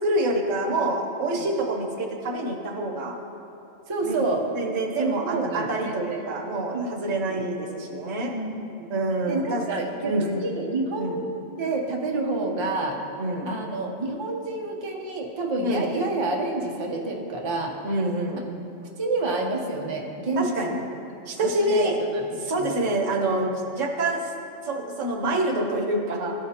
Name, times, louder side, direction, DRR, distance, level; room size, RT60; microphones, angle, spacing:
voice 1, 0.0-3.2 4.0-4.2 4.6-8.3 8.9-9.6 10.1-10.5 11.0-11.3 13.2-13.5 15.6-15.9 17.8-18.4 20.4-20.8 21.3-22.0 22.4-24.3 24.6-26.3, right 1 dB, 70° right, 1 dB, 1.2 m, -26 dB
voice 2, 3.9-4.5 5.0-6.3 6.7-6.9 7.2-7.4 8.3-8.9 9.2-13.0 13.5-17.7 19.0-20.8 21.3-22.2 22.5-22.7, right 2 dB, 30° right, 0 dB, 0.5 m, -28 dB
14.0 x 5.0 x 2.9 m, 2.8 s
omnidirectional pair, 1.4 m